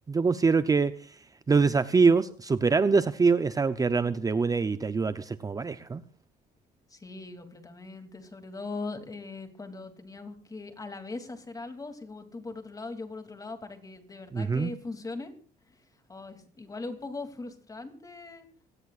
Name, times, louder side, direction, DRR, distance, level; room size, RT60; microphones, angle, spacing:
voice 1, 0.1-1.2 1.5-6.0 14.3-14.7, right 4 dB, 20° right, 12 dB, 0.7 m, -24 dB
voice 2, 6.9-15.3 15.7-15.8 16.1-18.5, left 3 dB, 20° left, 6 dB, 2.9 m, -40 dB
25.5 x 18.0 x 2.5 m, 0.43 s
cardioid pair, 110°, 17 cm